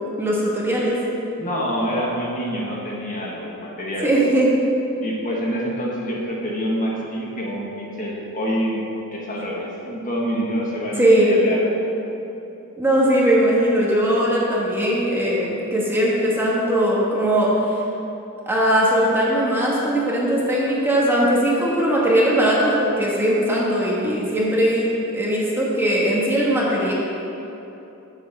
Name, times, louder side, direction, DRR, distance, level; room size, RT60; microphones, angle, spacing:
voice 1, 0.2-0.9 4.0-4.5 11.0-11.4 12.8-17.5 18.5-24.9 25.1-26.9, right 1 dB, 10° right, -5 dB, 1.3 m, -19 dB
voice 2, 1.4-4.1 5.0-8.8 9.1-11.6, equal, 40° left, -4 dB, 1.4 m, -26 dB
6.9 x 5.6 x 7.1 m, 3.0 s
head